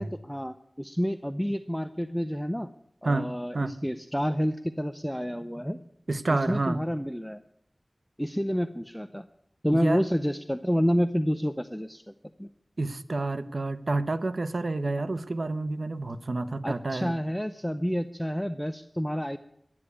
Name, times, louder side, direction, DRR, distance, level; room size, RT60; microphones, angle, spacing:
voice 1, 0.0-2.7 3.0-5.8 6.5-7.4 8.2-9.3 9.6-12.1 12.4-12.5 16.6-19.4, equal, 5° left, 10 dB, 0.6 m, -29 dB
voice 2, 3.0-3.7 6.1-6.8 9.7-10.0 12.8-17.1, right 2 dB, 75° right, 10 dB, 0.9 m, -29 dB
12.0 x 9.6 x 9.7 m, 0.75 s
wide cardioid pair, 50°, 0 cm